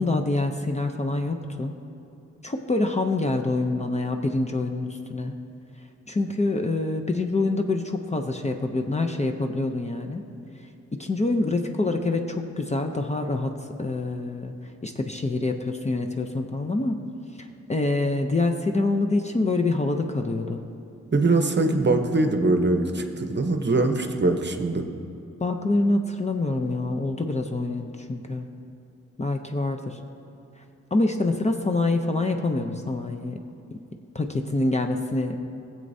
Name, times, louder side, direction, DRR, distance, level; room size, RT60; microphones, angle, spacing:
voice 1, 0.0-1.7 2.4-5.3 6.1-10.2 10.9-17.0 17.4-20.7 25.4-28.5 29.2-30.0 30.9-33.4 33.7-33.8 34.1-35.4, left 2 dB, 25° left, 4 dB, 0.5 m, -26 dB
voice 2, 21.1-24.8, right 2 dB, 40° right, 6 dB, 0.8 m, -22 dB
17.0 x 7.7 x 2.7 m, 2.7 s
wide cardioid pair, 85°, 29 cm